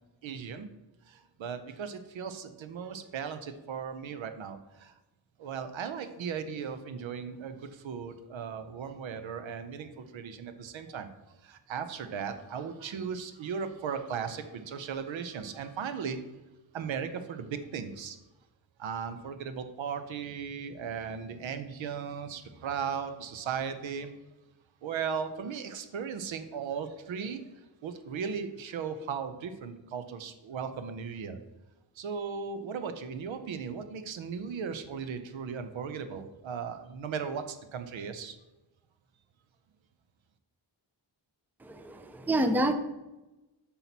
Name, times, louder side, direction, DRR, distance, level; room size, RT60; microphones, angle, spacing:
voice 1, 0.2-0.7 1.1-4.9 5.4-11.1 11.4-16.2 16.7-18.2 18.8-24.1 24.8-27.5 27.8-31.4 32.0-38.4, right 6 dB, 90° right, 9 dB, 0.7 m, -37 dB
voice 2, 41.6-42.7, right 1 dB, 5° right, 8 dB, 0.4 m, -28 dB
5.9 x 5.7 x 4.0 m, 1.0 s
wide cardioid pair, 125°, 45 cm